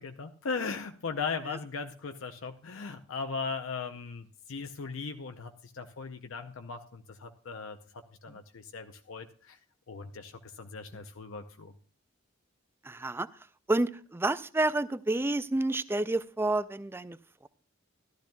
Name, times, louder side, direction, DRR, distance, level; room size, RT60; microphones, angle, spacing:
voice 1, 0.0-9.6 9.9-11.7, left 5 dB, 80° left, 7 dB, 0.6 m, -38 dB
voice 2, 12.8-13.3 13.7-17.2, right 2 dB, 10° right, 15 dB, 0.3 m, -29 dB
14.5 x 12.0 x 2.3 m, 0.43 s
head